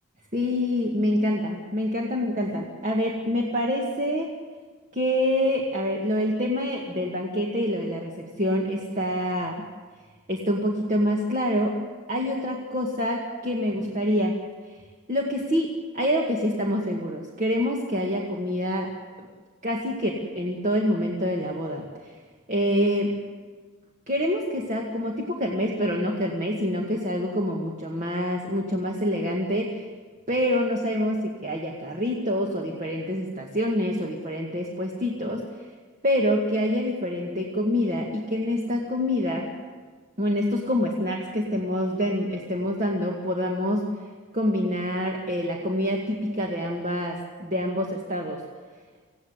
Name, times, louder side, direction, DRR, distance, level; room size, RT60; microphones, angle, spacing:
voice 1, 0.3-4.3 4.9-8.1 8.4-9.6 10.3-11.8 12.1-14.4 14.7-14.8 15.1-18.9 19.2-19.3 19.6-22.1 22.5-23.1 24.1-29.9 30.3-35.4 36.0-39.5 40.2-43.9 44.3-48.4, equal, 35° right, 0 dB, 1.9 m, -26 dB
26.5 x 16.5 x 8.2 m, 1.5 s
head